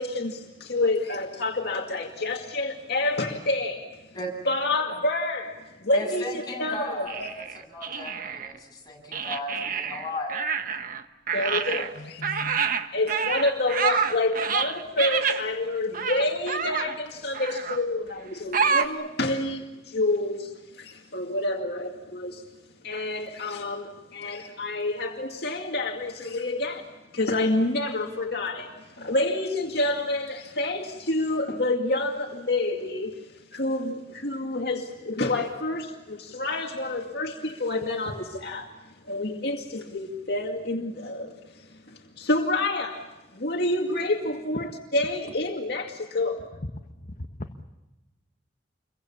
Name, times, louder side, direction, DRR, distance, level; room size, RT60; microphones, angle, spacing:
voice 1, 0.0-4.0 4.4-7.3 11.3-12.2 12.9-22.4 22.8-26.9 27.1-38.7 39.1-43.0 43.3-46.4, left 2 dB, 65° left, 2.2 m, -28 dB
voice 2, 5.9-7.4 7.7-10.4, left 1 dB, 25° left, 7.7 m, -35 dB
sound 1, 7.1-8.6 9.1-11.0 11.3-15.4 15.9-17.0 17.3-17.8 18.5-18.9, right 6 dB, 50° right, 1.2 m, -28 dB
voice 3, 12.0-12.6 44.6-44.7 46.5-46.6 47.0-47.6, left 2 dB, 45° left, 1.2 m, -39 dB
28.5 x 23.5 x 7.2 m
head